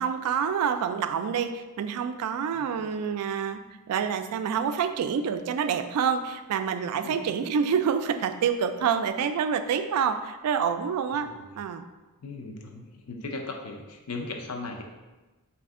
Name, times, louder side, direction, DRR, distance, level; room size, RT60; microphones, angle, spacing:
voice 1, 0.0-3.6 3.9-11.3 11.6-11.8, right 7 dB, 85° right, 9 dB, 0.3 m, -27 dB
voice 2, 2.5-2.9 7.0-7.2 11.1-11.5 12.2-14.8, left 3 dB, 80° left, 2 dB, 0.6 m, -38 dB
4.2 x 2.5 x 3.5 m, 1.2 s
head